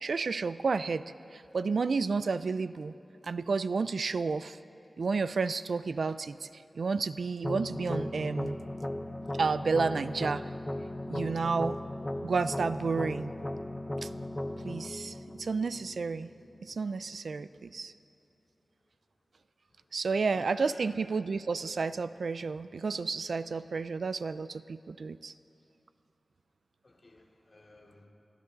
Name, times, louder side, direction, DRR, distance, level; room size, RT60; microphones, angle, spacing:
voice 1, 0.0-1.0 1.3-3.0 3.2-4.6 5.0-8.6 9.4-10.4 11.1-11.8 12.2-13.3 14.0-14.1 14.6-16.3 16.6-17.9 19.9-25.3, right 4 dB, 75° right, 14 dB, 0.4 m, -31 dB
sound 1, 7.4-16.4, left 1 dB, 20° left, 0.6 m, -37 dB
voice 2, 19.8-20.9 26.8-28.1, left 2 dB, 45° left, -1 dB, 2.6 m, -53 dB
29.0 x 12.0 x 4.0 m, 2.9 s
wide cardioid pair, 110°, 0 cm